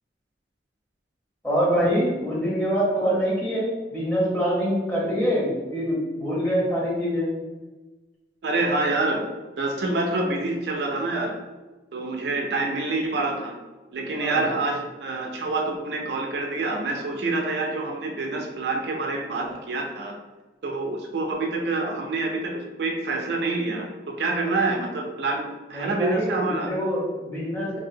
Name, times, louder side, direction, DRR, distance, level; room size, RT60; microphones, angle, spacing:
voice 1, 1.4-7.3 14.2-14.5 25.7-27.8, equal, 10° left, -6 dB, 0.8 m, -25 dB
voice 2, 8.4-9.3 9.6-11.3 11.9-13.5 13.9-20.2 20.6-26.7, right 2 dB, 65° right, 2 dB, 0.4 m, -27 dB
2.7 x 2.6 x 2.6 m, 1.2 s
head